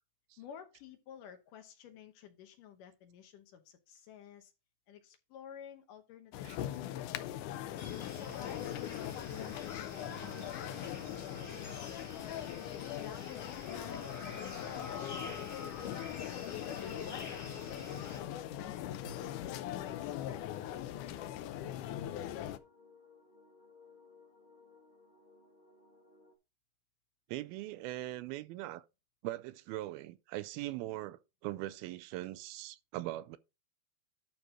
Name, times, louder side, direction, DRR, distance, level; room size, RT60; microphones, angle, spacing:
voice 1, 0.4-4.5 4.9-7.4 8.1-12.5 12.9-15.7 16.7-19.4 19.7-22.4, left 8 dB, 70° left, 2.4 m, -54 dB
sound 1, 6.3-22.6, left 12 dB, 85° left, 1.8 m, -41 dB
sound 2, 7.8-18.2, left 2 dB, 20° left, 1.9 m, -48 dB
sound 3, 7.9-26.3, left 3 dB, 35° left, 0.6 m, -62 dB
voice 2, 27.3-28.8 29.2-33.4, right 16 dB, 80° right, 2.4 m, -41 dB
11.5 x 4.0 x 4.9 m
omnidirectional pair, 4.4 m